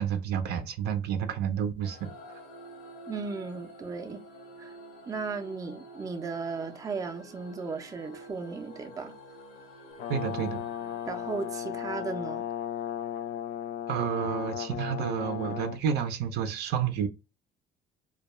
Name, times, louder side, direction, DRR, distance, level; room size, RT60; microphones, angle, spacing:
voice 1, 0.0-2.1 10.1-10.6 13.9-17.1, right 8 dB, 75° right, 0.5 m, -30 dB
sound 1, 1.8-12.7, right 1 dB, 90° left, 1.0 m, -49 dB
voice 2, 3.1-4.2 4.6-4.8 5.1-9.2 11.0-12.5, right 4 dB, 20° right, 0.4 m, -36 dB
Brass instrument, 10.0-15.8, left 10 dB, 70° left, 0.4 m, -35 dB
2.2 x 2.2 x 2.9 m
cardioid pair, 110°, 17 cm